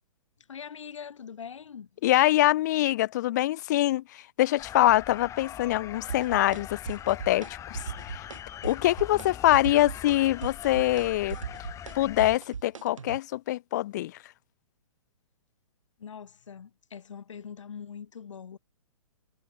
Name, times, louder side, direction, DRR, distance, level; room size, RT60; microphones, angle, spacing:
voice 1, 0.5-1.9 16.0-18.6, left 7 dB, 60° left, 4.8 m, -42 dB
voice 2, 2.0-7.8 8.1-8.3 8.6-11.4 11.9-14.2, left 15 dB, 35° left, 0.3 m, -24 dB
sound 1, 4.6-12.4, left 10 dB, 15° left, 1.6 m, -42 dB
sound 2, 6.1-6.6 6.9-7.5 7.7-8.4 8.6-9.3 9.5-13.2, right 6 dB, 70° right, 1.8 m, -38 dB
figure-of-eight pair, 120°, 17 cm